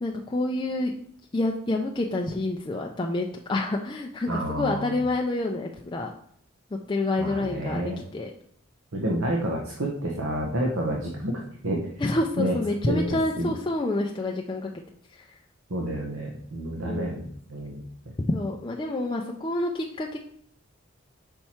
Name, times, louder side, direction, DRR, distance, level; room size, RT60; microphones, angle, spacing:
voice 1, 0.0-0.9 1.3-6.1 6.9-8.3 12.0-14.7 15.1-15.2 16.8-17.2 18.2-20.2, left 2 dB, 20° left, 0 dB, 0.4 m, -28 dB
voice 2, 4.3-5.0 7.2-8.0 8.9-11.9 12.4-12.6 12.9-13.5 15.7-17.8, right 1 dB, 75° right, -2 dB, 1.0 m, -29 dB
5.7 x 4.4 x 4.3 m, 0.63 s
head